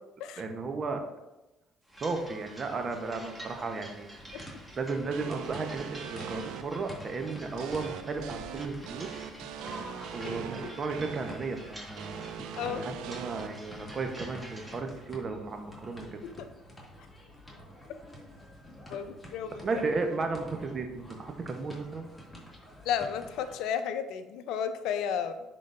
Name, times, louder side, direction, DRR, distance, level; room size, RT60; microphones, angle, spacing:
voice 1, 0.4-1.0 2.0-4.1 4.7-9.1 9.7-9.8 10.1-12.3 12.7-16.2 19.6-22.1, right 4 dB, 40° right, 5 dB, 0.9 m, -34 dB
sound 1, 1.9-14.8, right 1 dB, 10° right, 1.6 m, -49 dB
sound 2, 4.1-23.5, equal, 10° left, 2.2 m, -49 dB
sound 3, 5.1-6.6 7.6-11.3 12.0-13.5, right 9 dB, 75° right, 0.4 m, -41 dB
voice 2, 12.6-12.9 16.4-16.5 18.9-19.8 22.8-25.4, left 8 dB, 70° left, 10 dB, 0.5 m, -33 dB
10.0 x 3.8 x 2.6 m, 1.0 s
hypercardioid pair, 65°, 0 cm